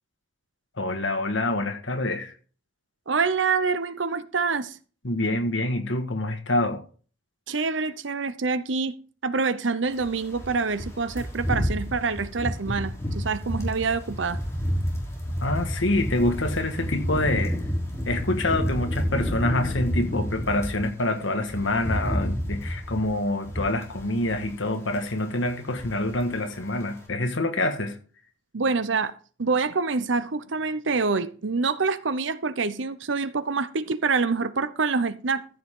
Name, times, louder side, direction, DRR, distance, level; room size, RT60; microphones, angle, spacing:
voice 1, 0.8-2.3 5.0-6.8 15.4-17.6 18.0-27.9, left 2 dB, 75° left, 1.6 m, -26 dB
voice 2, 3.1-4.8 7.5-9.0 9.2-14.4 28.5-29.1 29.4-35.5, right 4 dB, 70° right, 0.8 m, -26 dB
sound 1, 9.9-20.9 21.2-24.6 24.9-25.2 25.5-26.3 26.5-26.7, equal, 15° left, 3.3 m, -30 dB
14.5 x 6.6 x 3.7 m
head